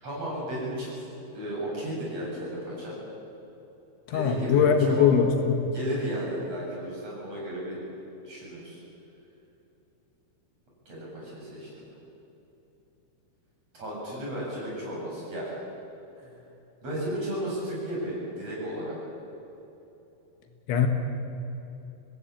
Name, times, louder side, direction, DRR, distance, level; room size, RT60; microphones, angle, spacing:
voice 1, 0.0-1.0 1.3-3.0 4.1-5.1 5.7-7.8 8.2-8.8 10.9-11.8 13.7-15.6 16.2-16.3 16.8-18.9, right 1 dB, 30° right, -5 dB, 9.0 m, -34 dB
voice 2, 4.1-5.6 20.7-20.9, left 7 dB, 75° left, 5 dB, 3.8 m, -21 dB
26.0 x 18.5 x 8.7 m, 3.0 s
omnidirectional pair, 5.6 m